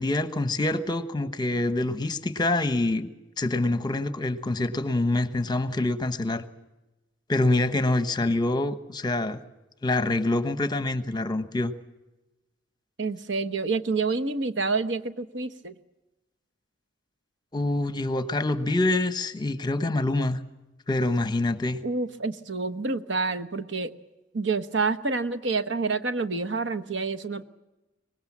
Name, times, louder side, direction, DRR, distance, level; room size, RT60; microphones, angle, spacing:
voice 1, 0.0-3.1 3.4-6.4 7.3-9.4 9.8-11.7 17.5-20.4 20.9-21.8, left 2 dB, 25° left, 11 dB, 1.1 m, -26 dB
voice 2, 13.0-15.7 21.8-23.9 24.3-27.4, right 3 dB, 75° right, 11 dB, 1.2 m, -28 dB
24.0 x 20.0 x 7.3 m, 1.0 s
head